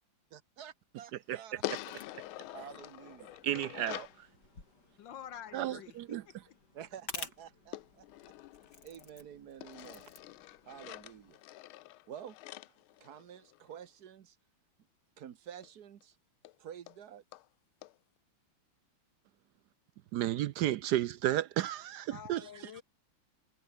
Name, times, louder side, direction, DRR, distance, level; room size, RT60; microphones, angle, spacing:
voice 1, 0.3-1.5 2.5-3.4 6.7-8.0 8.8-10.1 10.7-11.4 12.1-12.4 13.0-14.4 15.2-16.2 16.6-17.2, right 9 dB, 55° right, 1.5 m, -49 dB
voice 2, 1.3-1.8 2.1-2.2 3.4-4.3 5.5-6.2 20.1-22.8, right 13 dB, 75° right, 0.9 m, -33 dB
sound 1, 1.6-4.2 7.7-9.1 9.6-13.7 15.6-15.7 16.0-16.1 16.5-16.6 16.9-17.0 17.3-17.5 17.8-17.9, left 16 dB, 85° left, 1.5 m, -45 dB
sound 2, 1.7-11.4, left 3 dB, 50° left, 5.4 m, -52 dB
voice 3, 5.0-6.3 22.1-22.8, left 10 dB, 65° left, 1.5 m, -48 dB
omnidirectional pair, 2.3 m